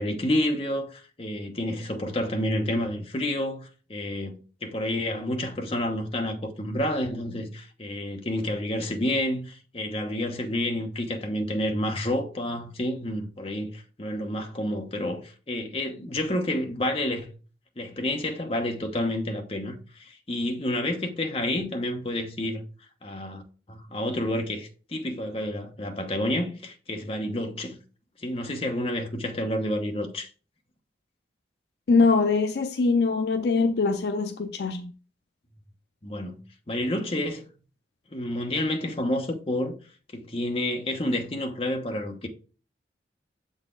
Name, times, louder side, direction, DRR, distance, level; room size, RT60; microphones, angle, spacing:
voice 1, 0.0-4.3 4.6-17.3 17.8-22.6 23.0-23.4 23.7-27.8 28.2-30.3 36.0-36.4 36.7-37.5 38.1-39.8 40.1-42.3, left 1 dB, 35° left, 0.9 m, -29 dB
voice 2, 31.9-34.9, left 4 dB, 65° left, 0.4 m, -23 dB
7.0 x 4.0 x 3.8 m
head